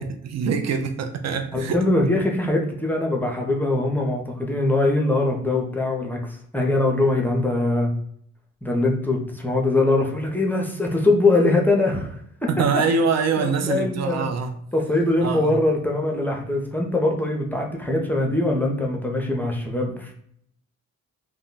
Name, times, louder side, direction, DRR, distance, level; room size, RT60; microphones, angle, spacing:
voice 1, 0.0-1.8 12.5-14.6 15.2-15.6, right 5 dB, 60° right, 0.5 m, -24 dB
voice 2, 1.5-6.2 6.5-7.9 8.6-12.1 13.4-14.3 14.7-20.1, left 2 dB, 5° left, 0.6 m, -22 dB
2.1 x 2.1 x 3.8 m
cardioid pair, 90°, 30 cm